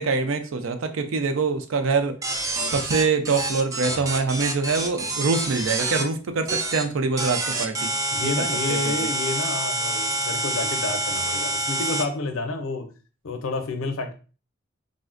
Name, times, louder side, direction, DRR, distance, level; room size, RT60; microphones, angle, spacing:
voice 1, 0.0-2.2 2.7-7.9 8.2-8.9, right 4 dB, 80° right, 0.5 m, -25 dB
sound 1, 2.2-6.0 6.5-6.8 7.2-12.0, right 2 dB, 15° right, 0.3 m, -27 dB
voice 2, 3.9-4.3 8.1-12.9 13.2-14.1, left 3 dB, 80° left, 0.5 m, -30 dB
3.6 x 2.1 x 2.5 m
head